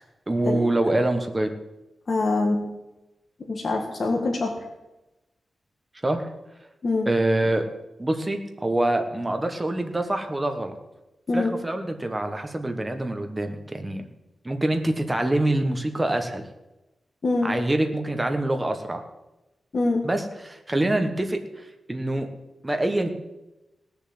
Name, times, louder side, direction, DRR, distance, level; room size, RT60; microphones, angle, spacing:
voice 1, 0.3-1.5 6.0-6.3 7.0-7.7 8.0-10.7 11.3-14.0 14.4-16.4 17.4-19.0 20.0-22.3 22.6-23.1, right 1 dB, 15° right, 6 dB, 1.4 m, -25 dB
voice 2, 2.1-2.6 3.5-4.6 6.8-7.1 11.3-11.5 17.2-17.6 19.7-20.0, left 2 dB, 40° left, -1 dB, 1.8 m, -24 dB
18.0 x 7.1 x 7.8 m, 0.99 s
wide cardioid pair, 150°, 0 cm